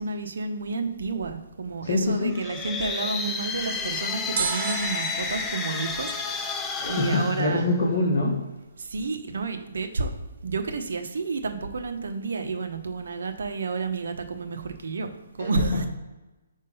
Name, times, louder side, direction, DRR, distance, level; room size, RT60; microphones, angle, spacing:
voice 1, 0.0-6.1 6.9-7.7 8.9-10.1 10.4-15.1 15.4-15.7, right 4 dB, 75° right, 5 dB, 1.0 m, -30 dB
voice 2, 1.8-2.3 6.8-8.4 15.4-15.9, left 2 dB, 45° left, -3 dB, 1.1 m, -25 dB
sound 1, 2.2-8.2, left 4 dB, 10° left, 0.4 m, -32 dB
sound 2, 4.4-7.4 7.7-7.8, right 6 dB, 50° right, 0.6 m, -34 dB
5.5 x 3.6 x 5.5 m, 1.1 s
hypercardioid pair, 165°, 0 cm